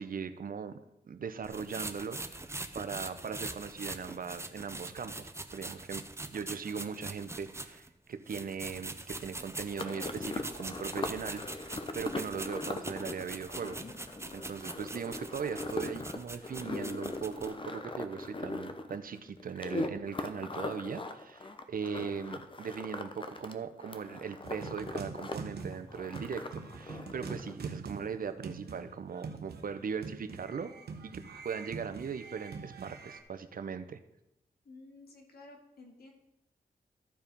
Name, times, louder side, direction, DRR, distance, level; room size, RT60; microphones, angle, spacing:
voice 1, 0.0-13.8 14.3-30.7 31.0-34.0, right 6 dB, 60° right, 11 dB, 0.8 m, -39 dB
sound 1, 1.4-7.9 8.3-17.5, right 2 dB, 15° right, 0.7 m, -43 dB
sound 2, 9.8-23.5 23.8-25.3 25.6-27.5, left 2 dB, 30° left, 0.8 m, -40 dB
sound 3, 24.4-33.2, right 5 dB, 90° right, 1.1 m, -44 dB
voice 2, 34.6-36.1, left 2 dB, 75° left, 1 dB, 2.2 m, -53 dB
13.0 x 4.8 x 5.3 m, 0.88 s
wide cardioid pair, 90°, 16 cm